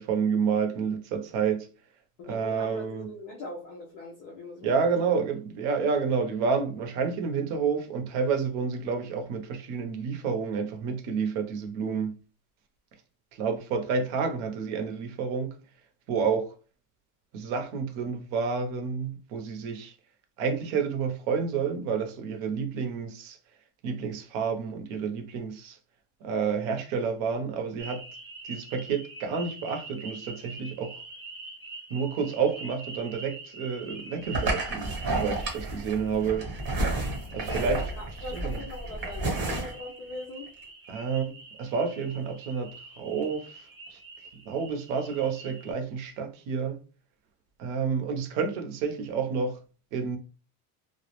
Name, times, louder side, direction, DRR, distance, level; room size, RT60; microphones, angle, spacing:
voice 1, 0.0-1.7 2.2-3.1 4.6-12.2 13.3-15.5 16.1-16.5 17.3-19.9 20.4-23.4 23.8-25.8 26.2-28.0 28.4-30.9 31.9-36.5 37.3-37.8 38.3-38.6 40.9-41.3 41.6-42.7 43.0-43.7 43.9-44.0 44.5-46.8 47.6-49.6 49.9-50.2, right 5 dB, 60° right, 0.7 m, -29 dB
voice 2, 2.2-5.2 37.4-40.5, left 2 dB, 35° left, 0.4 m, -41 dB
sound 1, 27.8-45.7, right 2 dB, 25° right, 0.8 m, -36 dB
2.3 x 2.0 x 2.9 m
cardioid pair, 150°, 46 cm